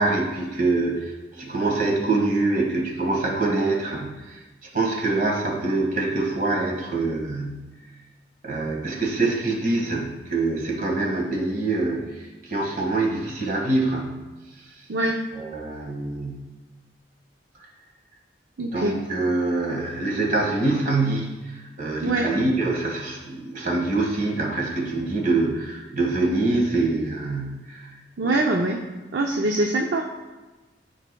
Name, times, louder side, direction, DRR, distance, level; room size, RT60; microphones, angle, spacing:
voice 1, 0.0-4.4 4.7-7.7 8.4-14.2 15.3-16.5 18.6-27.8 28.2-28.4, right 2 dB, 50° right, -1 dB, 1.7 m, -25 dB
voice 2, 14.9-15.2 18.6-19.0 22.0-22.3 28.2-28.8 29.1-30.0, right 2 dB, 65° right, 0 dB, 0.6 m, -23 dB
12.5 x 4.9 x 2.3 m, 1.2 s
head